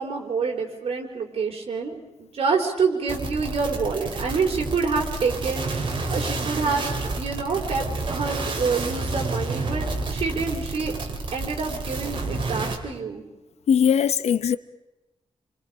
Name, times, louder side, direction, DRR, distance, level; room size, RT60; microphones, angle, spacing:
voice 1, 0.0-7.9 8.1-10.9 11.3-13.2, right 4 dB, 65° right, 4.2 m, -27 dB
sound 1, 3.1-12.8, right 3 dB, 50° right, 3.1 m, -29 dB
voice 2, 13.7-14.6, left 8 dB, 85° left, 0.8 m, -20 dB
29.5 x 25.0 x 5.0 m
wide cardioid pair, 165°, 11 cm